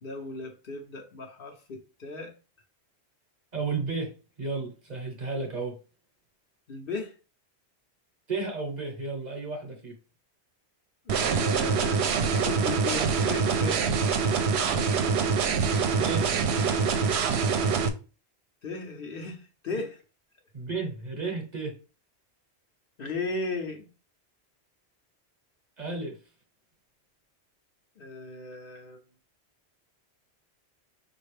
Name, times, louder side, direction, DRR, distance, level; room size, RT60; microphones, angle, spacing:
voice 1, 0.0-2.3 6.7-7.1 11.1-13.8 18.6-20.0 23.0-23.9 28.0-29.0, left 3 dB, 60° left, 1.0 m, -36 dB
voice 2, 3.5-4.1 4.4-5.8 8.3-9.9 16.0-16.3 20.5-21.7 25.8-26.2, right 4 dB, 45° right, 1.0 m, -33 dB
sound 1, 11.1-17.9, right 5 dB, 75° right, 0.8 m, -25 dB
5.3 x 2.6 x 3.2 m
omnidirectional pair, 1.1 m